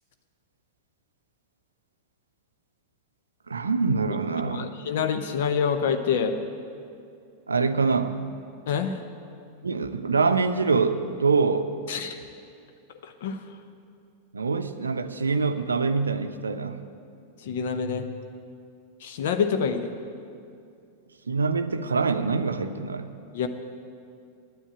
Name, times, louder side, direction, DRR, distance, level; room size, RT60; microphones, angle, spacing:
voice 1, 3.5-4.7 7.5-8.3 9.6-11.7 14.3-16.8 21.3-23.1, right 4 dB, 75° right, 10 dB, 0.5 m, -25 dB
voice 2, 4.4-6.4 8.7-9.0 11.9-12.2 13.0-13.4 17.4-18.0 19.0-19.9 23.3-23.5, left 6 dB, 55° left, 8 dB, 0.7 m, -27 dB
9.9 x 9.2 x 9.1 m, 2.5 s
figure-of-eight pair, 90°, 0 cm